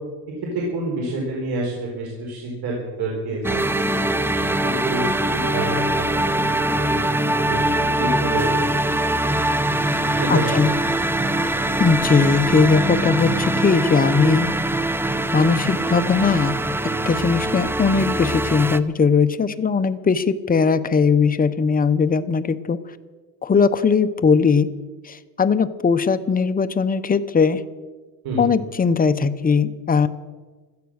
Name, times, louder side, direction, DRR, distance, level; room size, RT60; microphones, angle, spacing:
voice 1, 0.3-3.6 3.9-9.1 10.0-10.5 28.2-28.5, right 2 dB, 65° right, -2 dB, 4.6 m, -29 dB
sound 1, 3.4-18.8, right 1 dB, 5° right, 0.5 m, -22 dB
voice 2, 10.3-10.7 11.8-14.5 15.3-16.6 17.0-22.8 23.4-24.7 25.0-27.6 28.4-30.1, left 5 dB, 20° left, 10 dB, 0.8 m, -19 dB
16.5 x 13.5 x 6.5 m, 1.3 s
cardioid pair, 130°, 40 cm